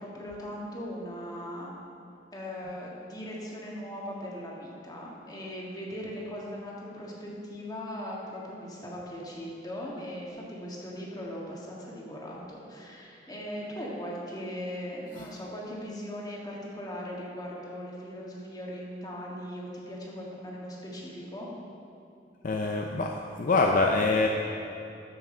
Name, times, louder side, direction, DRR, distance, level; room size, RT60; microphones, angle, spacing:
voice 1, 0.0-1.7 2.3-21.5, equal, 20° left, -4 dB, 1.6 m, -39 dB
voice 2, 22.4-23.1 23.4-24.3, left 3 dB, 50° left, 1 dB, 0.5 m, -24 dB
13.0 x 6.0 x 4.4 m, 2.7 s
head